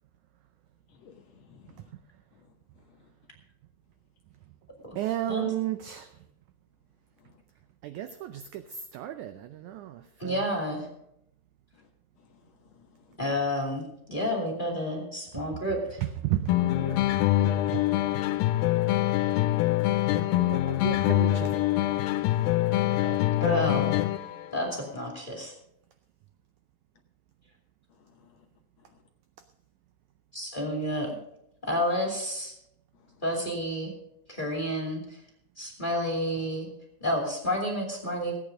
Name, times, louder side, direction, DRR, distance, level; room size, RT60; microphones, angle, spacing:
voice 1, 0.9-1.9 2.3-3.1 7.2-7.4 11.7-11.9 12.2-13.2 19.5-19.8 27.9-28.5 28.8-29.0 32.9-33.2, left 7 dB, 70° left, 3 dB, 1.6 m, -60 dB
voice 2, 5.0-6.2 7.8-10.4 15.3-15.4 16.0-17.0 17.7-17.9 20.1-21.6 22.8-23.2, right 13 dB, 80° right, 10 dB, 1.8 m, -34 dB
voice 3, 10.2-10.9 13.2-13.8 14.1-16.0 23.4-24.0 24.5-25.5 30.3-31.2 31.6-32.5 33.2-33.9 34.3-35.2 35.6-36.7 37.0-38.4, equal, 15° left, 0 dB, 2.2 m, -30 dB
sound 1, 16.5-24.5, left 15 dB, 85° left, 2.4 m, -25 dB
17.0 x 9.0 x 5.2 m, 0.78 s
omnidirectional pair, 4.1 m